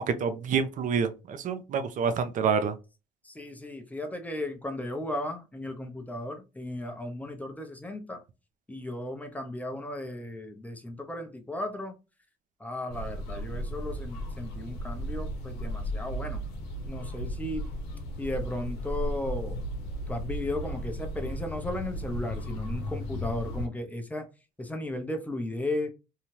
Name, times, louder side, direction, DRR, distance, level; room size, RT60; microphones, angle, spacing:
voice 1, 0.0-2.7, right 6 dB, 50° right, 0.5 m, -27 dB
voice 2, 3.2-8.2 8.7-11.9 12.6-16.4 16.9-17.7 18.2-19.6 20.1-24.3 24.6-25.9, left 1 dB, 10° left, 0.6 m, -35 dB
sound 1, 12.9-23.7, equal, 80° left, 0.9 m, -35 dB
2.7 x 2.3 x 3.1 m
cardioid pair, 110°, 17 cm